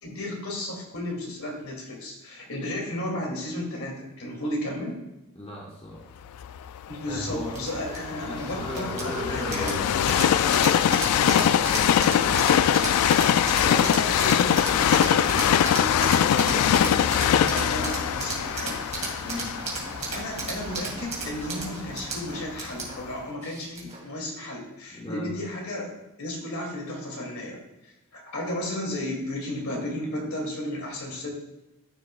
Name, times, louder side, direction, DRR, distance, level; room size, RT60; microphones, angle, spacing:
voice 1, 0.0-5.0 6.9-9.8 11.1-12.6 13.1-18.8 20.1-31.3, left 1 dB, 70° left, -1 dB, 2.4 m, -34 dB
voice 2, 5.3-6.1 7.1-7.6 8.2-9.9 19.2-19.5 24.9-25.4, left 1 dB, 25° left, -2 dB, 1.0 m, -36 dB
Train, 6.4-22.4 22.9-23.0, left 9 dB, 85° left, 0.3 m, -23 dB
sound 1, 7.5-24.1, right 3 dB, 30° right, 2.5 m, -35 dB
14.0 x 5.8 x 2.3 m, 0.96 s
head